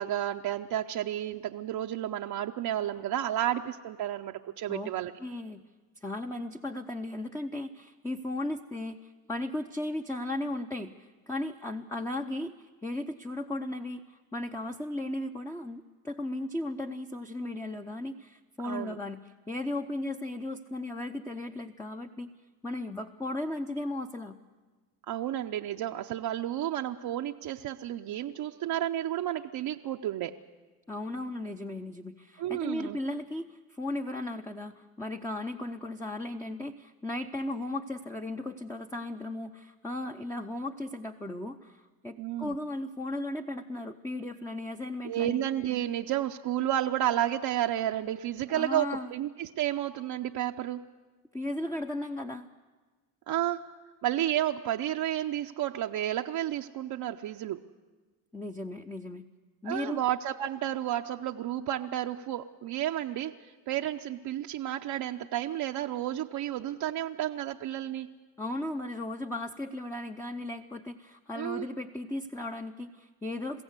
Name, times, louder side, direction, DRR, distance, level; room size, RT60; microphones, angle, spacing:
voice 1, 0.0-5.1 18.6-19.0 25.1-30.3 32.4-33.0 42.2-42.6 45.0-50.9 53.3-53.6 54.0-57.6 59.6-68.1 71.4-71.7, right 12 dB, 50° right, 3 dB, 0.7 m, -31 dB
voice 2, 5.2-5.6 6.0-12.6 12.8-22.3 22.6-24.4 30.9-45.4 48.5-49.1 51.3-52.5 58.3-59.3 59.6-60.0 68.4-73.6, left 1 dB, 5° left, 4 dB, 0.7 m, -36 dB
22.0 x 15.5 x 8.2 m, 1.3 s
supercardioid pair, 85°, 48 cm